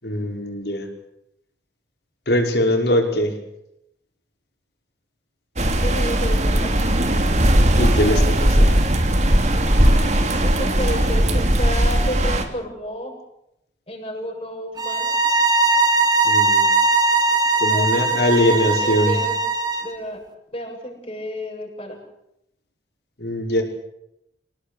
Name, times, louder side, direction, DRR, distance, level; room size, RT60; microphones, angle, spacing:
voice 1, 0.0-0.9 2.3-3.3 7.8-8.7 16.2-16.7 17.6-19.2 23.2-23.6, left 1 dB, 65° left, 3 dB, 5.7 m, -21 dB
sound 1, 5.6-12.4, right 1 dB, 40° right, 3.1 m, -18 dB
voice 2, 5.8-6.9 10.4-13.2 13.9-15.2 17.6-19.4 19.8-20.2 20.5-22.0, equal, 35° left, 1 dB, 8.0 m, -31 dB
sound 2, 14.8-19.9, right 3 dB, 25° right, 2.4 m, -19 dB
28.0 x 18.0 x 8.5 m, 0.82 s
head